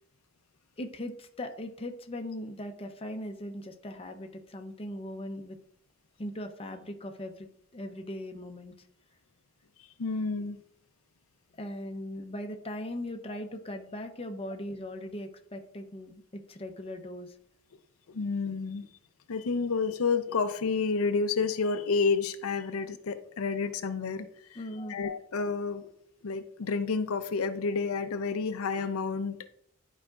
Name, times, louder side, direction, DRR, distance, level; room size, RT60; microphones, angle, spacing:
voice 1, 0.8-5.6 6.2-8.7 11.6-17.3 24.6-25.1, left 1 dB, 25° left, 5 dB, 0.6 m, -39 dB
voice 2, 10.0-10.6 13.3-13.4 18.1-18.9 19.3-24.6 24.9-25.9 26.2-29.4, left 4 dB, 80° left, 9 dB, 0.6 m, -30 dB
11.5 x 4.8 x 2.4 m, 0.70 s
head